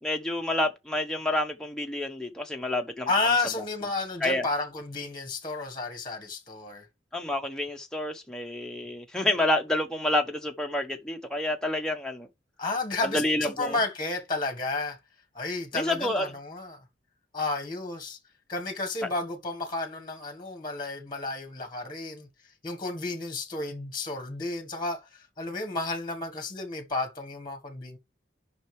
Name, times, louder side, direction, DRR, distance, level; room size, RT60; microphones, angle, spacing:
voice 1, 0.0-3.1 4.2-4.5 7.1-12.3 13.0-13.8 15.7-16.3 19.0-19.1, left 1 dB, 5° left, 1.0 m, -28 dB
voice 2, 3.1-6.8 12.6-15.0 15.3-16.8 17.3-18.2 18.5-22.3 22.6-25.1 25.4-28.0, left 3 dB, 25° left, 1.4 m, -31 dB
10.0 x 5.8 x 3.2 m
head